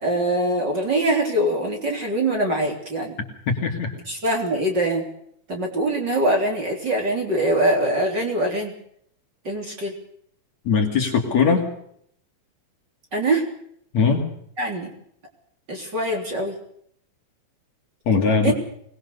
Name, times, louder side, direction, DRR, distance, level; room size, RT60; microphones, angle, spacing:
voice 1, 0.0-3.2 4.1-5.1 5.5-8.7 9.4-9.9 13.1-13.5 14.6-14.9 15.7-16.6 18.4-18.5, right 1 dB, 30° right, 1 dB, 3.9 m, -23 dB
voice 2, 3.5-3.9 10.7-11.6 13.9-14.2 18.1-18.5, left 5 dB, 50° left, 2 dB, 3.7 m, -20 dB
24.0 x 20.5 x 6.8 m, 0.68 s
omnidirectional pair, 4.2 m